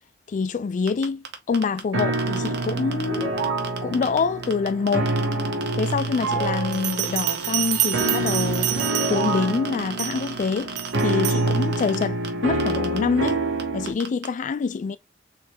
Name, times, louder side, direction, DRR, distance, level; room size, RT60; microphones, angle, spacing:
voice 1, 0.3-3.3 3.8-5.1 5.7-8.7 9.1-13.4 13.7-15.0, left 5 dB, 40° left, 0.3 m, -26 dB
sound 1, 0.9-4.2 4.4-12.3 12.6-13.0 13.3-13.4 13.6-14.3, right 6 dB, 60° right, 0.8 m, -36 dB
sound 2, 1.9-13.9, right 2 dB, 80° right, 1.0 m, -27 dB
Bell, 6.7-9.4 10.0-10.3 10.8-11.5, right 14 dB, 40° right, 0.4 m, -27 dB
3.5 x 3.2 x 2.9 m
head